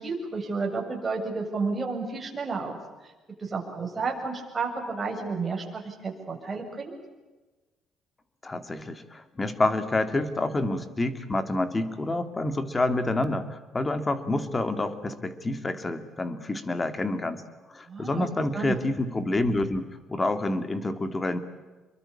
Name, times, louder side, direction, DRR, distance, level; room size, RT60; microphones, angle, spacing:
voice 1, 0.0-2.8 3.4-6.9 17.9-18.7, right 4 dB, 20° right, 1 dB, 7.3 m, -31 dB
voice 2, 8.4-17.4 17.7-21.4, left 2 dB, 20° left, 10 dB, 2.5 m, -28 dB
28.0 x 23.0 x 8.7 m, 1.2 s
cardioid pair, 130°, 0 cm